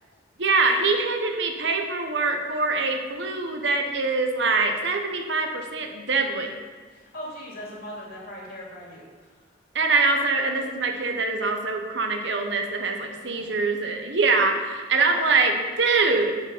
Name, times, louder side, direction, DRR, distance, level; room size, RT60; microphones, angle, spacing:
voice 1, 0.4-6.5 9.7-16.3, right 3 dB, 70° right, 4 dB, 1.0 m, -24 dB
voice 2, 6.9-9.0 13.2-13.6 15.0-15.3, equal, 55° left, -4 dB, 2.6 m, -40 dB
8.3 x 6.8 x 5.0 m, 1.5 s
head